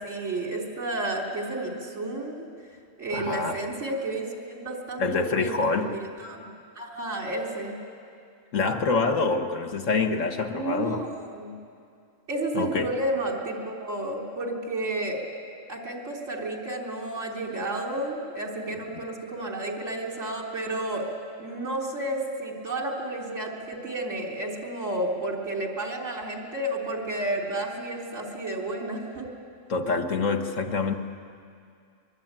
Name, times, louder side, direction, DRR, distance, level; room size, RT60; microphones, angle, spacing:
voice 1, 0.0-2.5 3.0-5.9 6.2-7.8 10.5-11.5 12.3-15.2 15.7-21.1 21.4-29.3, right 2 dB, 75° right, 0 dB, 3.8 m, -31 dB
voice 2, 3.1-3.6 5.0-5.9 8.5-11.0 12.6-12.9 29.7-30.9, left 4 dB, 85° left, 5 dB, 1.8 m, -26 dB
23.5 x 22.0 x 8.9 m, 2.4 s
omnidirectional pair, 1.3 m